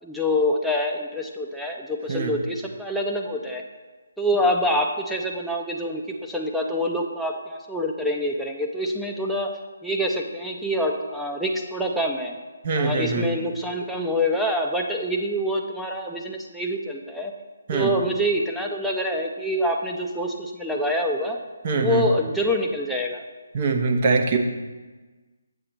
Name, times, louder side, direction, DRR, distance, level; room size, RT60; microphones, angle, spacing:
voice 1, 0.0-3.6 4.2-9.5 9.8-12.3 12.8-17.3 17.7-21.4 21.7-23.2, equal, ahead, -1 dB, 0.6 m, -26 dB
voice 2, 12.6-13.3 17.7-17.9 21.6-22.0 23.5-24.4, right 4 dB, 40° right, 4 dB, 0.9 m, -23 dB
8.2 x 7.5 x 3.0 m, 1.3 s
figure-of-eight pair, 150°, 0 cm